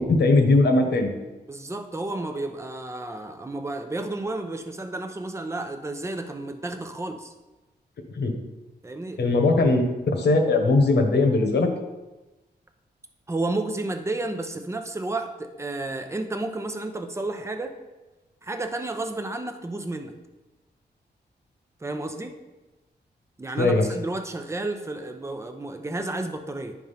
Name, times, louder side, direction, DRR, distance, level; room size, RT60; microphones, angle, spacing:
voice 1, 0.1-1.1 8.1-8.4 9.2-9.8 10.1-11.7 23.6-23.9, left 2 dB, 75° left, 3 dB, 1.2 m, -19 dB
voice 2, 1.5-7.3 8.8-9.2 13.3-17.7 18.4-20.2 21.8-22.3 23.4-26.7, right 2 dB, 15° right, 6 dB, 0.7 m, -31 dB
10.5 x 3.6 x 5.6 m, 1.1 s
wide cardioid pair, 110°, 17 cm